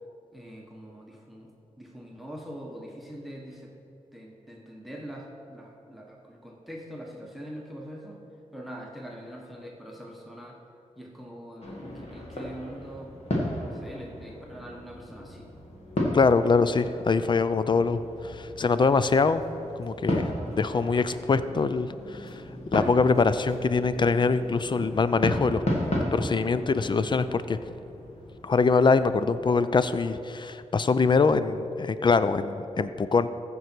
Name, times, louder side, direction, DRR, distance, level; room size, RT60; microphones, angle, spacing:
voice 1, 0.3-1.5 1.8-3.7 4.1-8.2 8.5-10.6 11.0-13.1 13.7-15.5 16.4-16.6, equal, ahead, -1 dB, 1.4 m, -43 dB
sound 1, 11.6-30.1, left 1 dB, 55° left, 2.1 m, -35 dB
voice 2, 16.1-19.4 19.8-20.3 20.6-22.4 22.7-25.6 26.1-27.6 28.4-33.3, left 4 dB, 40° left, 13 dB, 0.5 m, -23 dB
14.5 x 5.4 x 4.6 m, 2.7 s
cardioid pair, 60°, 12 cm